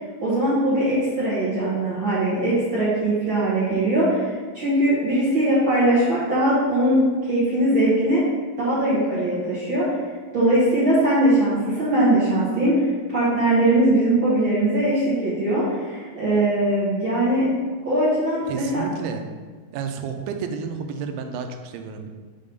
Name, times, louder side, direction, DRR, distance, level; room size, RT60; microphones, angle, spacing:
voice 1, 0.2-8.2 8.6-9.9 10.3-17.4 17.8-18.8, right 1 dB, 65° right, -9 dB, 1.2 m, -21 dB
voice 2, 18.5-19.2 19.7-22.1, right 6 dB, 90° right, 5 dB, 2.6 m, -31 dB
7.5 x 3.6 x 5.3 m, 1.4 s
omnidirectional pair, 4.6 m